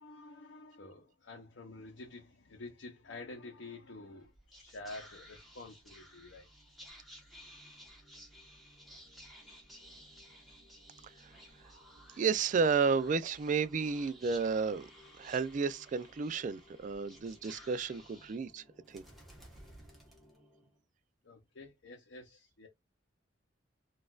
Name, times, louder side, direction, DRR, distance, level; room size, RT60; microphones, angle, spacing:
voice 1, 0.0-6.5 21.2-22.7, left 2 dB, 70° left, 0.8 m, -49 dB
Whispering, 4.2-20.8, equal, ahead, 1.1 m, -55 dB
voice 2, 12.2-14.9 15.2-18.6 18.9-19.0, right 5 dB, 40° right, 0.3 m, -32 dB
4.0 x 2.5 x 2.3 m
head